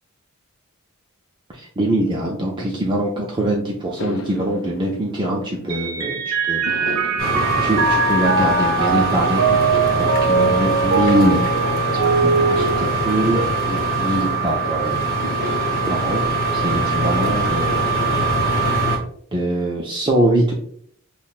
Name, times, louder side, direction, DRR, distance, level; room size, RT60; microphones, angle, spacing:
voice 1, 1.5-6.6 7.6-9.4 9.7-11.4 11.9-15.0 15.9-16.2 16.5-17.8 19.3-20.5, right 1 dB, 20° right, -2 dB, 0.4 m, -23 dB
sound 1, 4.0-6.1 6.7-8.9 9.5-11.8 12.4-14.6 15.2-16.3, left 1 dB, 60° left, 0.5 m, -35 dB
Mallet percussion, 5.7-13.4, right 4 dB, 70° right, 0.7 m, -21 dB
sound 2, 7.2-19.0, right 3 dB, 45° left, 1.0 m, -22 dB
5.5 x 2.1 x 2.3 m, 0.63 s
head